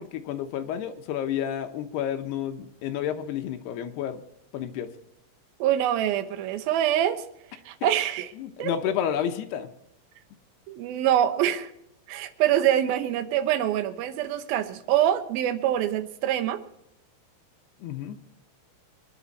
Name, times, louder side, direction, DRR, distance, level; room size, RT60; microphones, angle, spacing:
voice 1, 0.0-4.2 4.5-4.9 7.8-7.9 8.4-9.7 17.8-18.2, left 9 dB, 75° left, 6 dB, 2.8 m, -30 dB
voice 2, 5.6-7.2 7.7-8.3 8.6-8.7 10.7-11.7 12.1-16.6, right 11 dB, 70° right, 9 dB, 2.5 m, -25 dB
24.0 x 10.5 x 4.1 m, 0.81 s
omnidirectional pair, 5.2 m